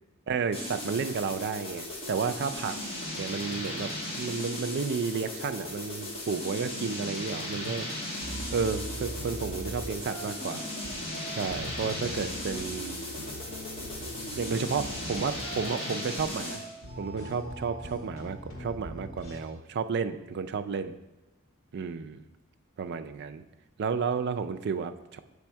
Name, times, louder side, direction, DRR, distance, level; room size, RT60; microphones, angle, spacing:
voice 1, 0.3-2.8 3.2-3.9 4.2-7.9 8.5-10.7 11.3-13.0 14.3-16.6 17.0-21.0 21.7-22.2 22.8-23.4 23.8-25.2, right 5 dB, 50° right, 9 dB, 0.4 m, -32 dB
sound 1, 0.5-16.7, left 1 dB, 30° left, 1.5 m, -37 dB
sound 2, 8.2-19.4, right 1 dB, 80° left, 1.5 m, -42 dB
7.4 x 3.4 x 4.5 m, 1.0 s
head